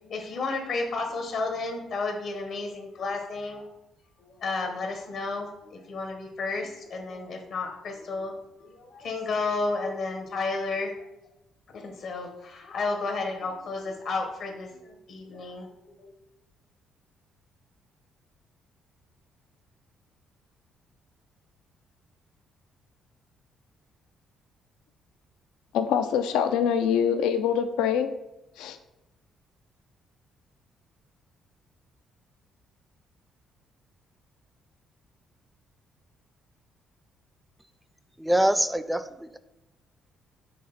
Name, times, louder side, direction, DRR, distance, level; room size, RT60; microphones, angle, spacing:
voice 1, 0.0-3.6 4.2-10.9 11.7-15.7 16.0-16.1, left 3 dB, 75° left, 1.4 m, -32 dB
voice 2, 25.7-28.1 28.6-28.8, left 8 dB, 90° left, 0.4 m, -24 dB
voice 3, 38.2-39.4, right 1 dB, 5° right, 0.4 m, -24 dB
6.5 x 3.3 x 5.7 m
cardioid pair, 95°, 0 cm